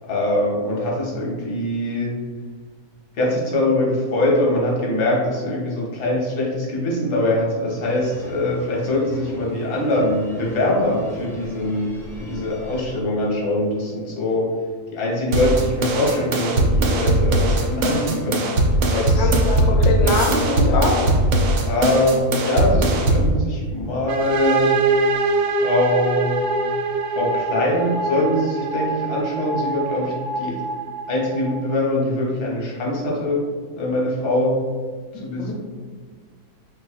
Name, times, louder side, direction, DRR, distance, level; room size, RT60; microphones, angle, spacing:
voice 1, 0.0-2.2 3.2-14.5 14.9-18.5 18.8-19.3 20.0-20.2 21.6-24.7 25.4-26.3 27.1-30.6 31.1-34.6 35.1-35.5, left 1 dB, 90° left, -3 dB, 1.6 m, -23 dB
sound 1, 7.8-13.0, left 1 dB, 5° left, 0.3 m, -39 dB
sound 2, 15.3-23.3, right 1 dB, 65° right, 1.0 m, -19 dB
voice 2, 19.2-21.0 35.1-35.5, left 3 dB, 70° left, 1 dB, 1.1 m, -23 dB
sound 3, 24.1-31.7, right 3 dB, 90° right, 1.1 m, -24 dB
5.3 x 3.5 x 2.4 m, 1.5 s
omnidirectional pair, 1.6 m